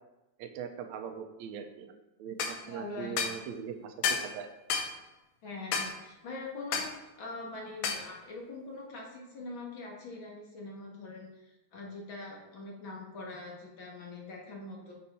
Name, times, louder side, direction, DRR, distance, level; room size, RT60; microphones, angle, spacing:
voice 1, 0.4-4.5, right 8 dB, 80° right, 5 dB, 1.9 m, -41 dB
sound 1, 2.4-2.6 3.2-3.4 4.0-4.3 4.7-4.9 5.7-5.9 6.7-6.9 7.8-8.1, left 6 dB, 75° left, 2.0 m, -30 dB
voice 2, 2.7-3.4 5.4-6.9 7.2-14.9, left 2 dB, 50° left, -2 dB, 1.9 m, -43 dB
6.8 x 5.5 x 4.2 m, 0.98 s
omnidirectional pair, 3.4 m